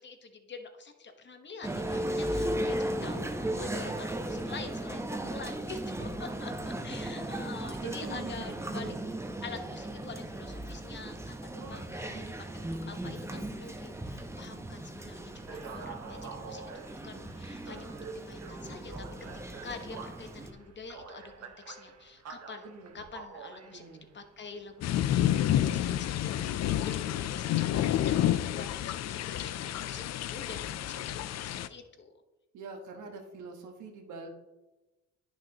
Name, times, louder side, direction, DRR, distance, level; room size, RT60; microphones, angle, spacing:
voice 1, 0.0-8.9 9.4-12.2 12.5-19.0 19.6-23.8 24.1-32.1, left 4 dB, 35° left, 7 dB, 1.1 m, -46 dB
Male speech man speaking, 1.6-20.5, right 1 dB, 10° right, 0.8 m, -37 dB
voice 2, 7.8-8.5 8.8-9.0 11.5-11.8 12.1-12.3 22.6-23.0 23.7-24.1 32.5-34.3, right 4 dB, 75° right, 3 dB, 1.4 m, -45 dB
sound 1, 15.2-27.1, right 5 dB, 60° right, 1.2 m, -48 dB
sound 2, 24.8-31.7, left 12 dB, 60° left, 0.4 m, -29 dB
10.5 x 6.2 x 2.8 m, 1.0 s
cardioid pair, 90°, 30 cm